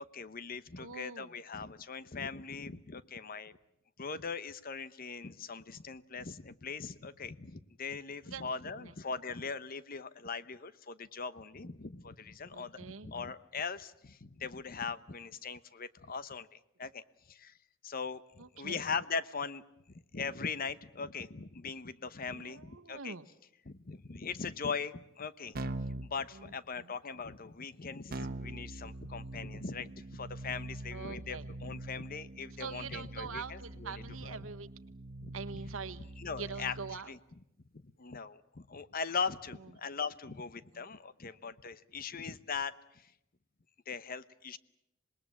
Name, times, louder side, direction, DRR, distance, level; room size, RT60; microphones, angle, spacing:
voice 1, 0.0-3.6 4.0-17.5 17.8-19.6 20.1-23.1 23.7-25.6 25.9-34.4 35.2-35.3 36.2-36.7 37.1-37.2 37.7-43.1 43.9-44.6, left 5 dB, 45° left, 15 dB, 0.9 m, -40 dB
voice 2, 0.8-1.4 8.2-8.4 8.8-8.9 12.5-13.2 18.4-18.9 22.3-23.2 26.3-26.9 30.9-31.5 32.6-34.7 35.3-36.1 36.4-37.1 40.7-40.8, right 5 dB, 90° right, 10 dB, 1.3 m, -44 dB
Keyboard (musical), 25.6-26.1 28.1-37.0, right 2 dB, 50° right, 1.2 m, -43 dB
26.5 x 20.0 x 8.7 m, 0.83 s
head